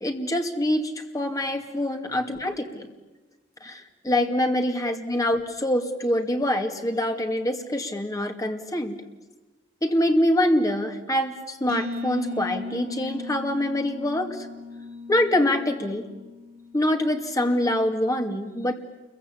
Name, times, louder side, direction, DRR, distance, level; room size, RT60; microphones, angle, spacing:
voice 1, 0.0-2.9 3.6-3.8 4.0-9.0 9.8-14.4 15.1-16.1 16.7-18.7, left 1 dB, 20° left, 4 dB, 2.5 m, -25 dB
sound 1, 11.7-17.3, left 2 dB, 50° right, 3.8 m, -37 dB
28.5 x 23.5 x 8.5 m, 1.1 s
head